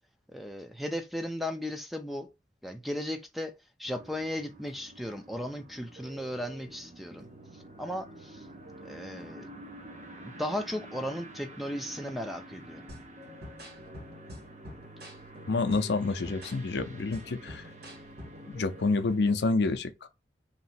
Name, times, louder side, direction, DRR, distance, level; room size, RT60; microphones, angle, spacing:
voice 1, 0.3-2.3 2.6-3.5 3.8-7.3 7.8-8.5 8.8-9.5 10.2-12.8, left 1 dB, ahead, 0.5 m, -36 dB
sound 1, 3.8-19.3, right 1 dB, 40° right, 0.7 m, -48 dB
sound 2, 12.9-18.5, equal, 65° right, 1.7 m, -48 dB
voice 2, 15.5-17.7 18.5-20.1, left 3 dB, 75° left, 0.5 m, -28 dB
3.2 x 2.9 x 4.2 m
head